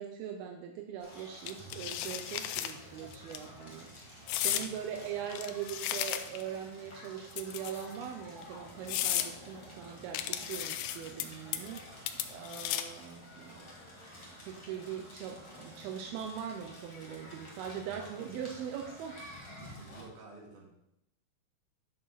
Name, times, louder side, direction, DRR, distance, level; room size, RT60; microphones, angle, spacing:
voice 1, 0.0-13.7 14.5-19.2, right 8 dB, 85° right, 4 dB, 2.6 m, -41 dB
Crackle, 1.0-20.0, equal, 30° left, 0.5 m, -51 dB
sound 1, 1.5-2.7 3.1-3.4 4.3-4.7 5.3-6.5 7.3-7.9 8.4-8.5 8.9-9.3 10.1-11.2 11.5-11.8 12.1-13.0, left 12 dB, 85° left, 2.4 m, -34 dB
sound 2, 8.0-17.7, equal, 35° right, 0.4 m, -58 dB
voice 2, 19.6-20.7, right 3 dB, 60° right, -3 dB, 3.4 m, -51 dB
9.7 x 6.4 x 4.1 m, 0.81 s
omnidirectional pair, 4.3 m